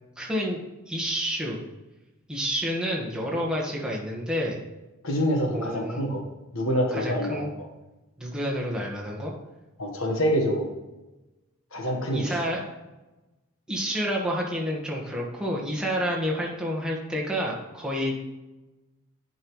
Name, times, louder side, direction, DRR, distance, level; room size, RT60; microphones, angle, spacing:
voice 1, 0.2-0.6 0.9-1.6 2.3-4.6 5.5-6.0 6.9-7.5 8.2-9.3 12.1-12.6 13.7-18.3, equal, 5° right, -4 dB, 1.4 m, -29 dB
voice 2, 5.0-6.2 6.5-7.7 9.8-10.7 11.7-12.4, equal, 65° left, 2 dB, 1.3 m, -26 dB
11.0 x 5.5 x 3.1 m, 1.0 s
head